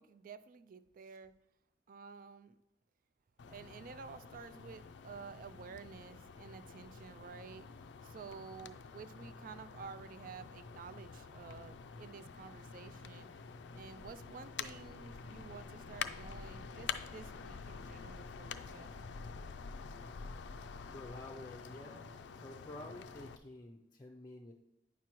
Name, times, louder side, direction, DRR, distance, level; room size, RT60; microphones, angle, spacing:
voice 1, 0.0-1.3 1.9-2.6 3.5-7.7 8.0-13.3 13.7-18.9, right 5 dB, 50° right, 14 dB, 0.3 m, -51 dB
sound 1, 3.4-23.4, left 6 dB, 75° left, 0.4 m, -47 dB
voice 2, 20.9-24.5, left 1 dB, 25° left, 1 dB, 0.5 m, -50 dB
9.3 x 6.0 x 3.0 m, 0.89 s
head